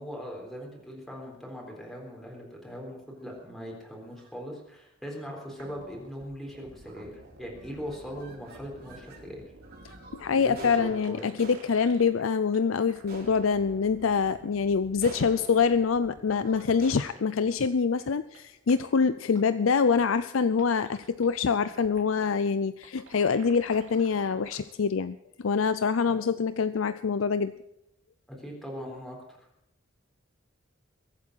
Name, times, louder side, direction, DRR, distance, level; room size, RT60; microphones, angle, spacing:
voice 1, 0.0-9.4 10.3-11.3 26.0-26.2 28.3-29.5, equal, ahead, -2 dB, 3.8 m, -40 dB
sound 1, 3.2-3.5 4.1-4.3 5.0-5.2 5.5-5.6 6.0-6.4 6.9-7.3 7.5-9.2 9.6-18.8, right 2 dB, 50° right, 6.0 m, -50 dB
sound 2, 5.5-12.2 12.5-17.2 17.5-17.6 18.0-18.1 18.3-18.4 18.7-18.8 19.0-19.1 19.4-19.5 19.8-19.9 20.4-22.3 22.8-24.6, right 2 dB, 70° right, 2.9 m, -51 dB
voice 2, 10.1-27.5, left 5 dB, 85° left, 13 dB, 0.5 m, -25 dB
22.5 x 8.5 x 6.3 m, 0.81 s
head